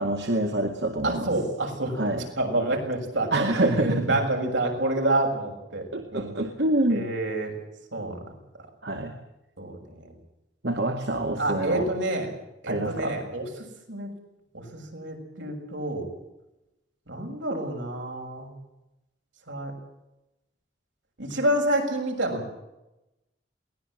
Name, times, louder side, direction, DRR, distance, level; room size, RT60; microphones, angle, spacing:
voice 1, 0.0-1.3 2.0-2.3 3.3-4.0 5.9-7.0 8.8-9.1 10.6-11.9 12.7-13.2, right 1 dB, 65° right, 3 dB, 2.2 m, -26 dB
voice 2, 1.0-6.3 6.9-7.5 7.9-8.3 9.6-10.1 11.4-12.3 12.6-13.5 13.9-14.1 14.5-16.1 17.1-18.5 19.5-19.7 21.2-22.5, right 1 dB, 85° right, 2 dB, 6.9 m, -28 dB
22.5 x 19.0 x 7.8 m, 0.93 s
head